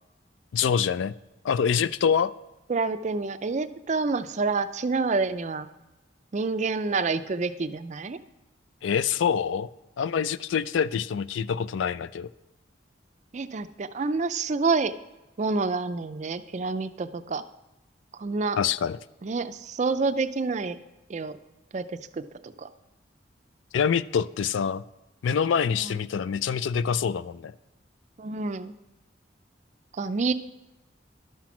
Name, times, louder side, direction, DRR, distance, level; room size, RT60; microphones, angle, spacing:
voice 1, 0.5-1.1 1.4-2.3 8.8-9.7 10.0-12.3 18.6-19.0 23.7-24.8 25.2-27.5, left 7 dB, 75° left, 17 dB, 0.3 m, -25 dB
voice 2, 2.7-5.7 6.3-8.2 13.3-14.9 15.4-17.4 18.2-18.6 19.2-20.8 21.1-21.4 21.7-22.7 25.8-26.0 28.2-28.7 29.9-30.3, right 4 dB, 40° right, 11 dB, 0.4 m, -28 dB
11.5 x 6.0 x 5.9 m, 1.0 s
head